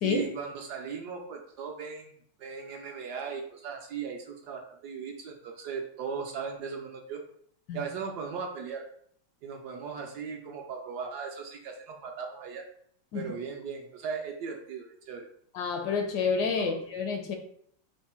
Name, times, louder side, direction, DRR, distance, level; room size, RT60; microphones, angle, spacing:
voice 1, 0.0-2.1 2.4-7.2 7.7-8.9 9.4-12.6 13.1-15.3 16.6-16.8, right 6 dB, 70° right, 1 dB, 1.1 m, -38 dB
voice 2, 15.5-17.4, left 5 dB, 75° left, 5 dB, 1.1 m, -29 dB
5.3 x 2.1 x 4.2 m, 0.64 s
omnidirectional pair, 2.0 m